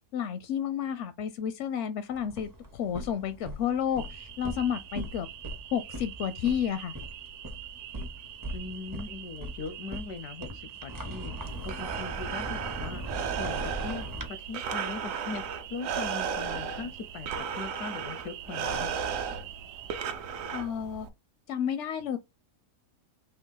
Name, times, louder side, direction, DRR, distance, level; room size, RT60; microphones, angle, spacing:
voice 1, 0.1-5.3 5.7-7.0 20.5-21.1 21.5-22.2, left 8 dB, 70° left, 0.7 m, -31 dB
sound 1, 2.1-14.3, equal, 25° right, 0.5 m, -40 dB
sound 2, 4.0-20.0, right 12 dB, 85° right, 1.2 m, -46 dB
voice 2, 8.5-13.0 13.4-18.9, left 4 dB, 90° left, 1.3 m, -40 dB
Breathing, 11.4-21.1, right 7 dB, 65° right, 1.0 m, -35 dB
4.4 x 2.9 x 3.9 m
omnidirectional pair, 1.6 m